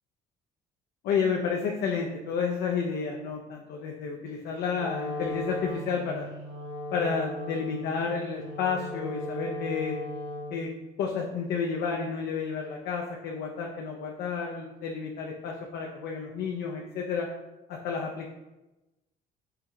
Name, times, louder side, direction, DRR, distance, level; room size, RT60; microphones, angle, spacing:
voice 1, 1.0-6.3 6.9-10.0 10.5-10.7 11.0-17.3 17.7-18.3, left 5 dB, 75° left, 0 dB, 0.5 m, -31 dB
Wind instrument woodwind instrument, 4.7-10.7, left 1 dB, 85° right, 1.1 m, -37 dB
4.6 x 2.2 x 3.6 m, 1.0 s
cardioid pair, 110°, 17 cm